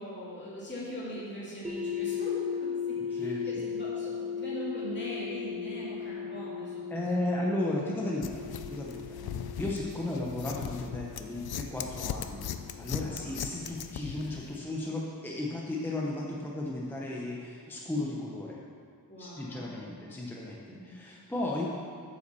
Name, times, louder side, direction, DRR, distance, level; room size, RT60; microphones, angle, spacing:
voice 1, 0.0-7.5 9.2-9.4 12.9-13.3 19.1-19.9 20.7-20.9, equal, 30° left, -8 dB, 2.3 m, -41 dB
sound 1, 1.6-13.6, left 7 dB, 20° right, 1.3 m, -38 dB
voice 2, 3.1-3.6 6.9-8.4 8.7-9.2 9.6-18.6 19.2-21.7, left 1 dB, 5° left, -3 dB, 0.7 m, -34 dB
sound 2, 8.2-14.6, left 8 dB, 75° left, 0.5 m, -39 dB
8.3 x 5.7 x 6.8 m, 2.2 s
wide cardioid pair, 175°, 37 cm